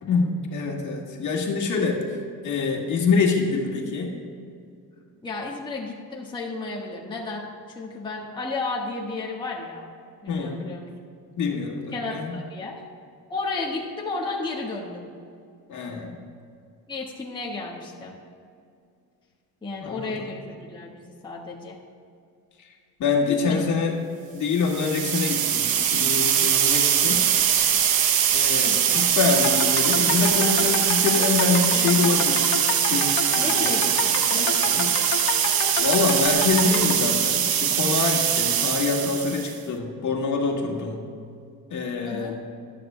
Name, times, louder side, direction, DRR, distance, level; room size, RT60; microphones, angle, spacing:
voice 1, 0.0-2.0 2.4-4.1 10.3-10.7 11.4-12.3 15.7-16.2 19.8-20.3 23.0-24.0 24.3-27.2 28.3-32.5 32.9-33.1 33.4-33.9 34.4-34.9 35.8-41.0 41.7-42.4, left 4 dB, 45° left, 0 dB, 1.7 m, -25 dB
voice 2, 5.2-9.9 10.2-10.9 11.9-12.7 13.3-15.1 16.9-18.1 19.6-21.8 23.2-23.7 28.6-29.0 33.4-34.5 42.0-42.3, left 3 dB, 10° left, -3 dB, 1.3 m, -33 dB
sound 1, 24.6-39.5, right 9 dB, 60° right, 0.8 m, -22 dB
sound 2, 29.3-37.0, left 6 dB, 80° left, 1.4 m, -30 dB
17.5 x 12.0 x 2.2 m, 2.3 s
cardioid pair, 130°, 40 cm